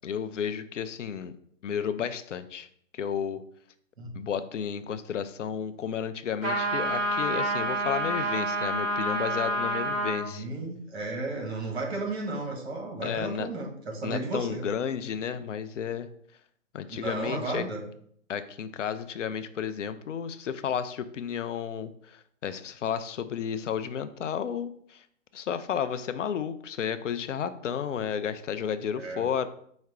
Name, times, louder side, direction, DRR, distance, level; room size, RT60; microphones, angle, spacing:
voice 1, 0.0-1.3 1.6-2.7 2.9-3.4 4.2-10.4 13.0-13.5 14.0-16.1 16.7-17.6 18.3-25.0 25.3-29.5, left 8 dB, 70° left, 11 dB, 0.5 m, -32 dB
sound 1, 6.4-10.3, right 1 dB, 35° right, 1.8 m, -28 dB
voice 2, 10.2-14.6 16.9-17.8 28.9-29.3, right 2 dB, 55° right, 1 dB, 1.6 m, -34 dB
4.8 x 2.1 x 4.7 m, 0.64 s
figure-of-eight pair, 140°, 39 cm